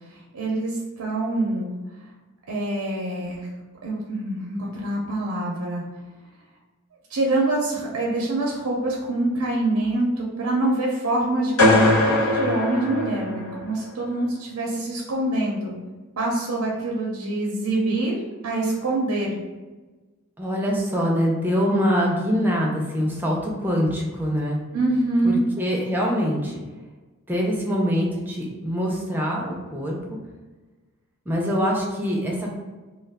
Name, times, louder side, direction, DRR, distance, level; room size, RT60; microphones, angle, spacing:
voice 1, 0.3-1.7 2.5-3.5 3.8-5.8 7.1-15.8 16.2-18.2 18.4-19.4 24.7-25.4, right 2 dB, 80° right, -2 dB, 0.5 m, -25 dB
sound 1, 11.6-13.7, left 1 dB, 75° left, 1.2 m, -20 dB
voice 2, 20.4-24.6 25.2-26.5 27.3-30.0 31.3-32.5, equal, 10° right, -2 dB, 0.5 m, -24 dB
2.3 x 2.2 x 3.4 m, 1.2 s
head